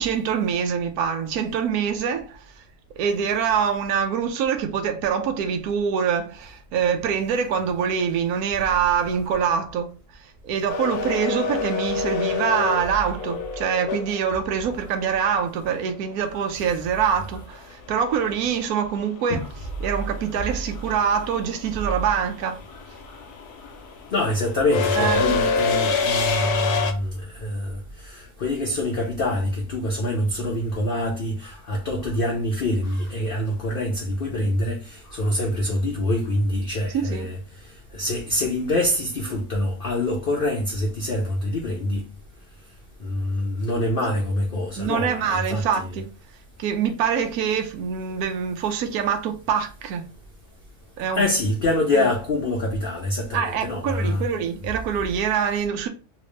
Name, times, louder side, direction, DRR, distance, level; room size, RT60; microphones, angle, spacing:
voice 1, 0.0-2.4 3.0-9.9 10.4-19.4 19.8-22.6 25.0-25.3 36.9-37.3 44.8-46.1 46.6-50.0 51.0-51.2 51.9-52.1 53.3-55.9, right 7 dB, 75° right, 1.2 m, -24 dB
sound 1, 10.7-14.7 17.2-17.3 18.6-18.9 19.1-26.9, left 5 dB, 85° left, 1.2 m, -26 dB
voice 2, 24.1-37.4 37.9-42.0 43.0-45.9 51.1-54.3, left 1 dB, 50° left, 0.7 m, -25 dB
3.3 x 2.8 x 3.1 m
omnidirectional pair, 1.6 m